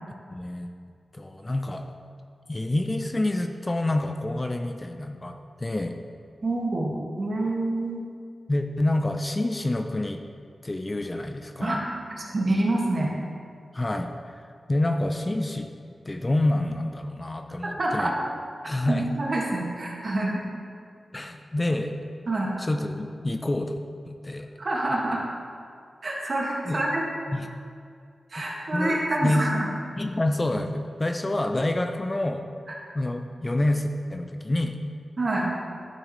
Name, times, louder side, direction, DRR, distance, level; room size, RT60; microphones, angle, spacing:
voice 1, 0.3-0.7 1.1-1.9 2.5-6.0 8.5-10.2 10.6-11.8 13.7-15.7 16.1-18.1 18.6-19.0 21.1-21.9 22.6-23.8 24.1-24.5 26.7-26.9 27.3-27.5 28.4-29.5 30.0-32.4 32.9-34.8, left 1 dB, 25° left, 5 dB, 0.5 m, -27 dB
voice 2, 6.4-8.0 11.6-11.8 12.3-13.1 17.8-18.1 18.9-20.4 22.3-22.5 24.6-25.2 26.0-27.0 28.3-29.7 35.2-35.5, right 2 dB, 50° right, -3 dB, 1.8 m, -26 dB
12.5 x 6.4 x 3.1 m, 2.2 s
wide cardioid pair, 90°, 0 cm